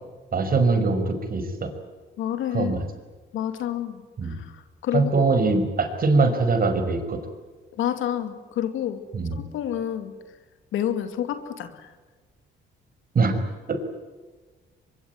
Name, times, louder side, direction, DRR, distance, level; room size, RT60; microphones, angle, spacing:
voice 1, 0.3-1.7 2.5-2.9 4.2-4.3 4.9-7.2 9.1-9.4 13.1-13.3 13.7-13.9, right 3 dB, 45° right, 7 dB, 5.3 m, -22 dB
voice 2, 2.2-2.7 3.3-5.3 7.7-9.0 9.3-10.1 10.7-11.9, left 10 dB, 85° left, 9 dB, 2.6 m, -29 dB
23.5 x 23.5 x 9.5 m, 1.3 s
cardioid pair, 90°, 20 cm